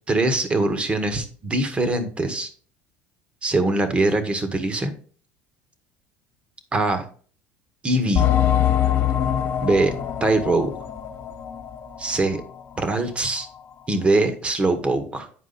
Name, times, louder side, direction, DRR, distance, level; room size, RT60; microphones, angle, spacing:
voice 1, 0.1-2.5 3.4-4.9 6.7-7.1 7.8-8.3 9.6-9.9 10.2-10.7 12.0-12.4 12.8-13.5 13.9-15.3, right 2 dB, 25° right, 8 dB, 1.7 m, -22 dB
sound 1, 8.1-12.4 12.7-12.8 13.4-13.5, left 10 dB, 50° left, 1.5 m, -24 dB
9.9 x 4.7 x 4.2 m, 0.43 s
supercardioid pair, 90°, 5 cm